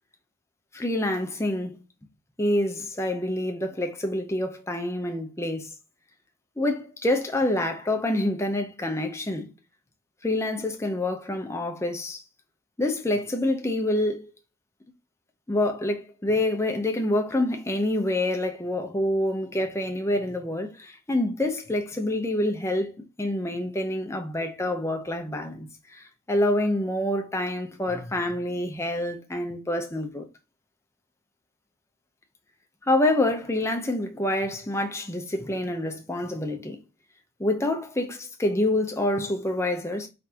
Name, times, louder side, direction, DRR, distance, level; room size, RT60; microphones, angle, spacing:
voice 1, 0.7-1.8 2.4-5.7 6.6-9.5 10.2-12.2 12.8-14.3 15.5-30.3 32.9-36.8 37.4-40.1, left 1 dB, 15° left, 0.7 m, -27 dB
3.8 x 3.7 x 2.9 m
head